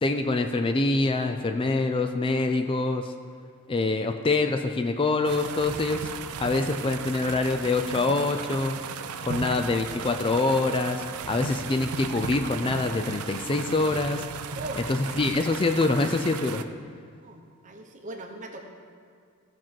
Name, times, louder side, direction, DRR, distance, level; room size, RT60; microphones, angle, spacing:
voice 1, 0.0-3.1 3.7-6.1 6.4-8.8 9.2-14.3 14.9-16.6, left 3 dB, 25° left, 6 dB, 0.4 m, -25 dB
sound 1, 5.2-16.6, right 6 dB, 80° right, 0.5 m, -36 dB
voice 2, 17.2-18.6, right 2 dB, 35° right, 3 dB, 1.1 m, -39 dB
15.0 x 6.1 x 4.4 m, 2.2 s
head